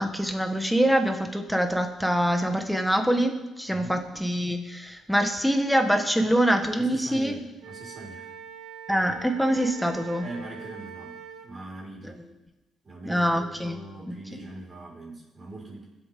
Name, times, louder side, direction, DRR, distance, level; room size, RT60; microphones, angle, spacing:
voice 1, 0.0-7.4 8.9-10.2 12.0-12.1 13.0-13.8 14.1-14.4, equal, ahead, 5 dB, 1.5 m, -25 dB
voice 2, 3.7-4.1 6.2-6.3 6.8-8.3 10.2-12.2 12.8-15.9, right 2 dB, 30° right, -3 dB, 5.5 m, -41 dB
Wind instrument woodwind instrument, 7.6-11.5, right 7 dB, 85° right, 1.4 m, -43 dB
22.0 x 8.4 x 3.8 m, 1.0 s
cardioid pair, 95°, 0 cm